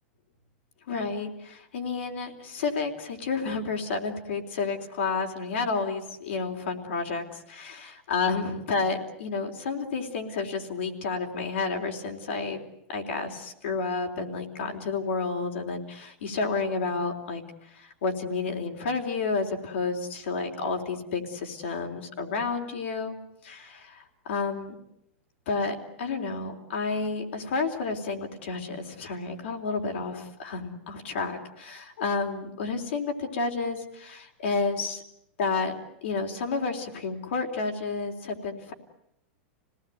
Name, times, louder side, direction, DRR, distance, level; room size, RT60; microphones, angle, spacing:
voice 1, 0.9-12.6 12.9-17.4 17.7-23.2 23.4-24.8 25.5-35.0 35.4-38.7, left 4 dB, 80° left, 4 dB, 3.7 m, -31 dB
27.0 x 18.5 x 9.2 m, 0.79 s
hypercardioid pair, 120°, 6 cm